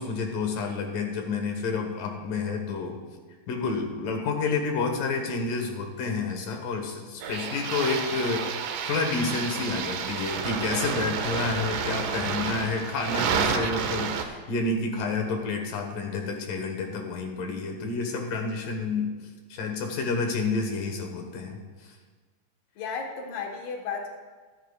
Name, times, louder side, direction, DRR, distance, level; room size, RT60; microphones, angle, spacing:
voice 1, 0.0-3.0 3.5-8.5 8.9-19.1 19.5-21.6, left 4 dB, 80° left, 3 dB, 3.1 m, -29 dB
sound 1, 7.2-14.2, right 6 dB, 80° right, 2.4 m, -30 dB
voice 2, 22.8-24.1, left 5 dB, 55° left, 1 dB, 2.4 m, -33 dB
22.5 x 10.5 x 2.4 m, 1.4 s
omnidirectional pair, 3.8 m